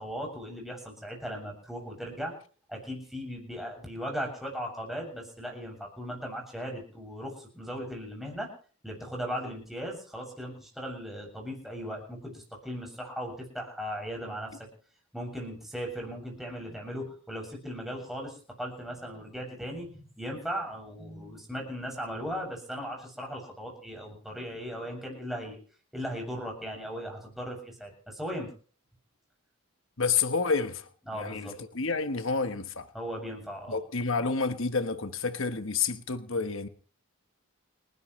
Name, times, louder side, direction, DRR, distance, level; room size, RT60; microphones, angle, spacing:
voice 1, 0.0-2.3 2.7-8.5 8.8-14.6 15.1-25.6 25.9-28.5 31.1-31.6 32.9-33.8, equal, ahead, 7.2 m, -37 dB
voice 2, 30.0-32.9 33.7-36.7, left 4 dB, 65° left, 1.2 m, -29 dB
30.0 x 11.5 x 3.2 m
head